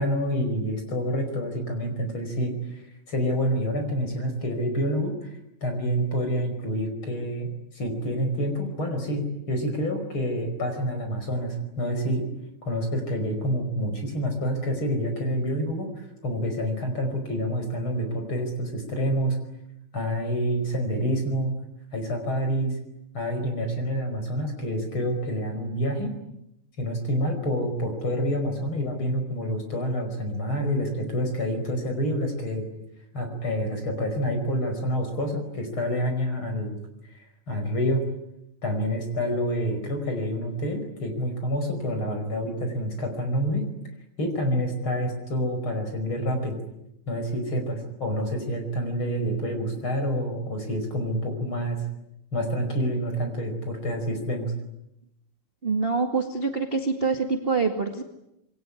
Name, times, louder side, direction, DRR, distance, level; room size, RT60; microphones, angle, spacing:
voice 1, 0.0-2.5 3.1-5.3 5.6-12.3 12.6-15.9 16.2-19.4 19.9-21.5 21.9-22.8 23.1-26.1 26.8-32.7 33.1-36.7 37.5-38.0 38.6-43.7 44.2-46.6 47.1-51.8 52.3-54.5, equal, 35° left, 6 dB, 5.8 m, -27 dB
voice 2, 55.6-58.0, right 4 dB, 20° right, 4 dB, 1.5 m, -25 dB
27.0 x 22.5 x 9.8 m, 0.84 s
omnidirectional pair, 4.2 m